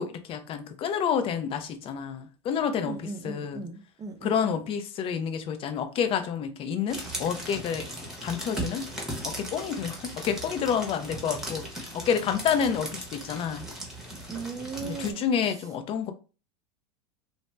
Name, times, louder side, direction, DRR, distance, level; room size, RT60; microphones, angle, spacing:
voice 1, 0.0-3.6 4.2-7.9 8.2-8.9 9.2-13.7 14.8-16.1, left 7 dB, 40° left, 0.6 m, -29 dB
voice 2, 2.8-4.6 14.3-15.2, right 4 dB, 20° right, 0.6 m, -38 dB
sound 1, 6.9-15.1, right 1 dB, 5° right, 1.0 m, -38 dB
2.6 x 2.2 x 3.2 m
hypercardioid pair, 110°, 15 cm